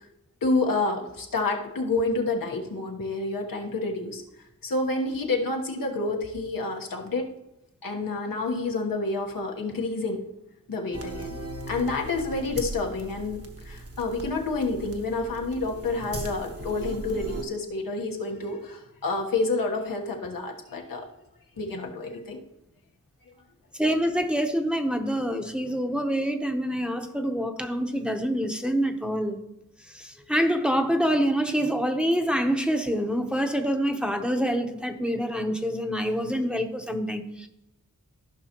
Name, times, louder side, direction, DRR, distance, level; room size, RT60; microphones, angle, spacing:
voice 1, 0.4-4.2 4.6-7.3 7.8-10.2 10.7-11.4 11.7-21.1 21.6-22.4, left 3 dB, 90° left, 1.3 m, -29 dB
sound 1, 10.9-17.4, right 1 dB, 45° right, 1.3 m, -38 dB
voice 2, 23.7-29.4 29.9-37.5, equal, 5° right, 0.9 m, -26 dB
14.5 x 5.6 x 3.0 m
wide cardioid pair, 65°, 33 cm